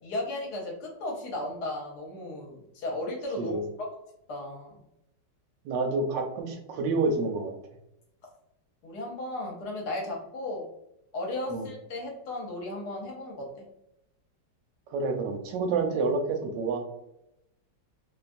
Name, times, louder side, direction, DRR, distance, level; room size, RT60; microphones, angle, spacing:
voice 1, 0.0-3.9 4.3-4.7 8.8-10.6 11.1-13.5, left 2 dB, 65° left, -1 dB, 1.2 m, -35 dB
voice 2, 5.6-7.5 11.5-11.7 14.9-16.8, right 3 dB, 80° right, 4 dB, 1.3 m, -28 dB
3.0 x 2.2 x 2.5 m, 0.84 s
omnidirectional pair, 2.0 m